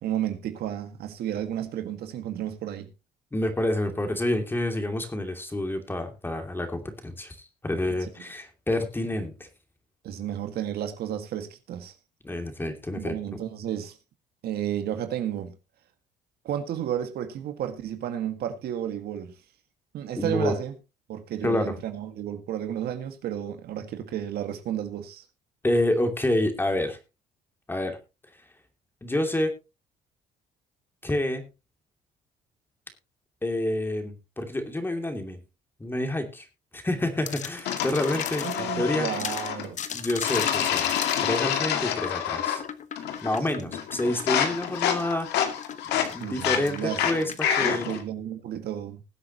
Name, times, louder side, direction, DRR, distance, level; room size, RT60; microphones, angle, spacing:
voice 1, 0.0-2.9 10.0-11.9 12.9-14.0 14.4-15.6 16.4-19.4 19.9-20.7 21.1-25.2 38.4-39.8 46.2-49.0, right 10 dB, 70° right, 1.8 m, -32 dB
voice 2, 3.3-9.5 12.2-13.4 20.2-20.6 21.4-21.8 25.6-27.0 27.7-28.0 29.0-29.5 31.0-31.5 33.4-35.4 35.8-36.5 36.7-39.1 39.9-40.9 41.2-42.6 43.2-45.4 45.9-47.9, left 1 dB, 10° left, 2.6 m, -28 dB
sound 1, 37.3-38.7 39.1-47.5, left 8 dB, 45° left, 1.2 m, -37 dB
sound 2, 37.7-39.7 40.2-42.7 43.0-43.4 43.7-48.0, left 9 dB, 80° left, 2.2 m, -28 dB
20.5 x 8.0 x 2.9 m
cardioid pair, 110°, 17 cm